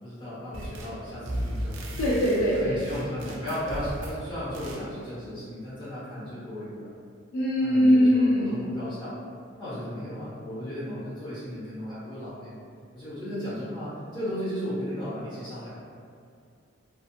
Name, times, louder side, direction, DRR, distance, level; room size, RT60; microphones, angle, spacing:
voice 1, 0.0-1.8 2.5-6.9 7.6-9.1 9.6-12.6 12.9-15.7, equal, 25° left, -12 dB, 1.2 m, -35 dB
sound 1, 0.5-1.0 1.2-4.2 4.5-4.8, equal, 70° right, 0.4 m, -35 dB
voice 2, 2.0-2.8 7.3-8.6, equal, 85° left, -7 dB, 0.4 m, -21 dB
2.8 x 2.5 x 2.4 m, 2.3 s
head